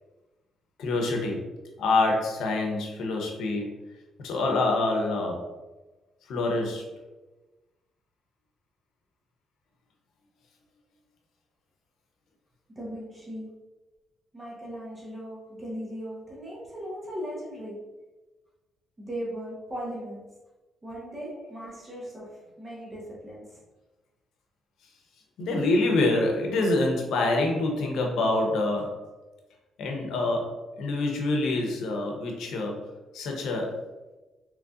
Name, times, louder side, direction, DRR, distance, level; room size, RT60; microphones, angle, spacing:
voice 1, 0.8-1.4 1.8-3.7 4.2-5.4 6.3-6.8 25.4-29.0 29.8-32.8 33.1-33.8, left 2 dB, 80° left, 1 dB, 0.7 m, -26 dB
voice 2, 12.8-13.5 14.3-17.8 19.0-20.2 20.8-22.3 22.6-23.4, equal, 25° right, -5 dB, 1.0 m, -37 dB
3.8 x 3.1 x 2.4 m, 1.1 s
cardioid pair, 90°, 0 cm